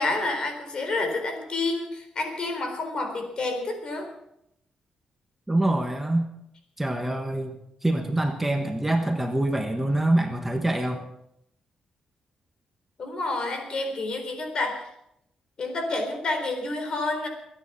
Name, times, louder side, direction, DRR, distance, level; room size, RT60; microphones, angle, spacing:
voice 1, 0.0-4.1 13.0-14.9 15.6-17.3, left 2 dB, 45° left, 5 dB, 4.1 m, -29 dB
voice 2, 5.5-6.3 6.8-11.1, right 1 dB, 10° right, 4 dB, 1.4 m, -25 dB
23.5 x 10.0 x 5.9 m, 0.78 s
cardioid pair, 125°, 2 cm